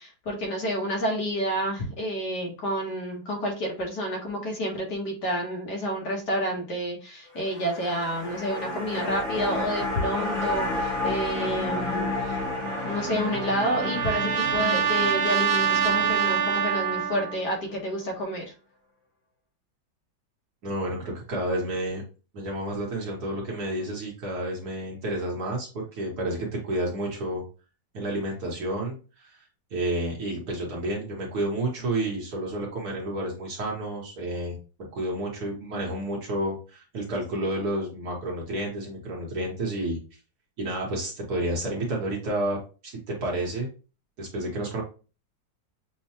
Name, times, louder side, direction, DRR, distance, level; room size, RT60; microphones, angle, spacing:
voice 1, 0.0-12.4 12.8-18.5, equal, 60° left, 0 dB, 1.6 m, -29 dB
sound 1, 7.3-17.7 18.0-18.1, left 2 dB, 30° left, 1.3 m, -32 dB
Trumpet, 12.6-17.4, right 7 dB, 85° right, 1.5 m, -26 dB
voice 2, 20.6-22.0 22.3-27.4 27.9-29.3 29.7-34.6 34.9-40.0 40.6-42.6 42.8-43.7 44.2-44.8, right 1 dB, 55° right, -1 dB, 1.4 m, -30 dB
6.4 x 2.2 x 2.8 m, 0.34 s
omnidirectional pair, 2.2 m